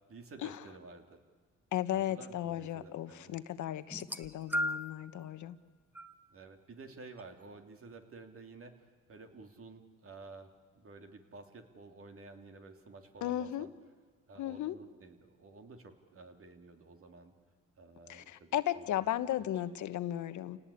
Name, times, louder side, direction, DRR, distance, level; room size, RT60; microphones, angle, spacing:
voice 1, 0.1-1.2 1.9-3.4 6.3-13.7 14.3-17.3 17.8-19.1 19.4-19.5, right 3 dB, 45° right, 5 dB, 3.1 m, -52 dB
voice 2, 1.7-5.6 13.2-13.7 14.4-14.7 18.1-20.6, left 12 dB, 75° left, 12 dB, 1.2 m, -35 dB
sound 1, 3.9-5.1 5.9-6.2 7.2-7.3, equal, 5° right, 1.2 m, -35 dB
28.5 x 18.5 x 8.7 m, 1.5 s
cardioid pair, 90°, 30 cm